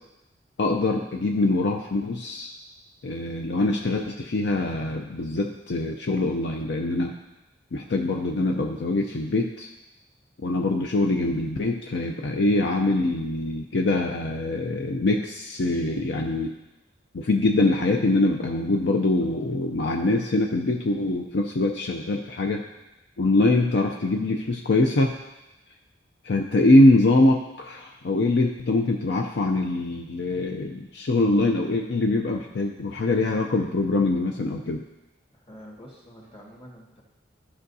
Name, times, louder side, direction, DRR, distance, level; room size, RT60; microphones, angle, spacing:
voice 1, 0.6-2.6 3.0-7.1 7.7-9.7 10.4-16.5 17.1-22.6 23.2-25.1 26.2-34.8, left 2 dB, 65° left, 2 dB, 0.5 m, -23 dB
voice 2, 35.3-37.0, equal, 30° left, -2 dB, 1.8 m, -47 dB
13.5 x 5.6 x 2.7 m, 1.0 s
head